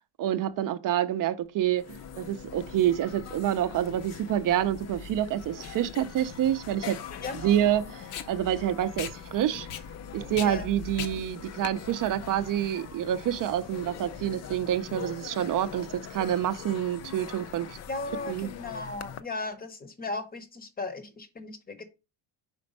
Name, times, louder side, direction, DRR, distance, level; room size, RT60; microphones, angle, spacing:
voice 1, 0.2-7.0 7.4-9.7 10.1-17.8 18.3-18.5, right 11 dB, 45° right, 0.5 m, -27 dB
sound 1, 1.5-1.6 1.7-19.2, left 7 dB, 35° left, 0.4 m, -42 dB
Packing tape duct tape, 5.3-12.8, left 9 dB, 75° left, 0.9 m, -42 dB
voice 2, 17.9-21.8, left 3 dB, 20° left, 0.8 m, -36 dB
5.2 x 4.3 x 5.2 m
cardioid pair, 170°, 47 cm